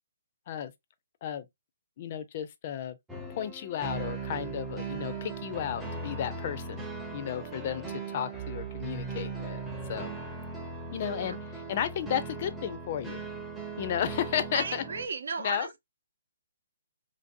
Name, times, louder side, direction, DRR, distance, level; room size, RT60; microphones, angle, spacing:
voice 1, 2.0-3.0 3.3-6.9 7.1-9.6 9.9-10.1 10.9-11.4 11.7-13.2 13.8-14.8 15.4-15.8, left 9 dB, 40° left, 0.4 m, -33 dB
sound 1, 3.1-15.1, right 4 dB, 5° right, 0.6 m, -38 dB
voice 2, 14.5-15.8, right 4 dB, 75° right, 0.7 m, -35 dB
3.0 x 2.6 x 2.5 m
hypercardioid pair, 160°, 0 cm